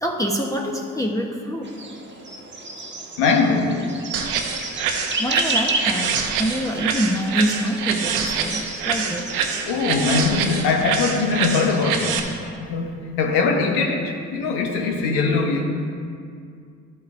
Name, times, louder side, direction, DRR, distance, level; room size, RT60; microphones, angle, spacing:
voice 1, 0.0-1.7 5.2-9.3, equal, 10° left, -1 dB, 0.9 m, -25 dB
sound 1, 1.6-12.4, right 2 dB, 30° right, 1.3 m, -32 dB
voice 2, 3.2-3.9 9.6-15.6, left 4 dB, 80° left, 3 dB, 1.0 m, -22 dB
sound 2, 4.1-12.2, right 6 dB, 85° right, 0.7 m, -26 dB
12.0 x 8.5 x 2.5 m, 2.3 s
hypercardioid pair, 45°, 39 cm